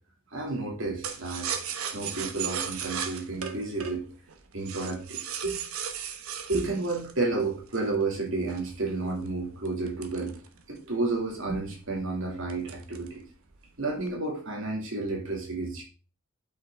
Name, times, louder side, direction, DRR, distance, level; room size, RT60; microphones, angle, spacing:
voice 1, 0.3-1.5 1.9-4.0 4.5-5.6 6.5-10.3 10.7-13.2 13.8-15.8, right 3 dB, 70° right, 0 dB, 2.7 m, -31 dB
sound 1, 1.0-7.9 8.5-10.9 11.3-11.4 11.7-12.0 12.5-13.2 13.5-14.1, right 8 dB, 90° right, 1.0 m, -36 dB
8.4 x 5.9 x 3.7 m, 0.36 s
head